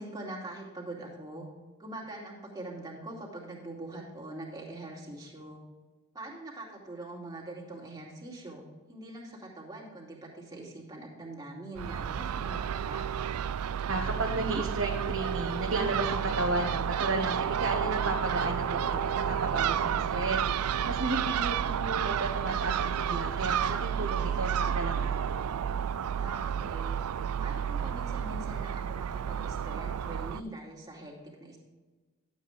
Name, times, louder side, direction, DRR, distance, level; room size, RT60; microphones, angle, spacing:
voice 1, 0.0-1.5 1.8-5.6 6.1-13.1 26.0-27.0 27.4-31.6, right 1 dB, 15° right, -3 dB, 2.6 m, -43 dB
Crow / Gull seagull, 11.8-30.4, right 8 dB, 80° right, 0.4 m, -31 dB
voice 2, 13.6-20.4 20.8-25.5, right 2 dB, 60° right, 0 dB, 1.2 m, -33 dB
12.0 x 8.3 x 3.6 m, 1.3 s
head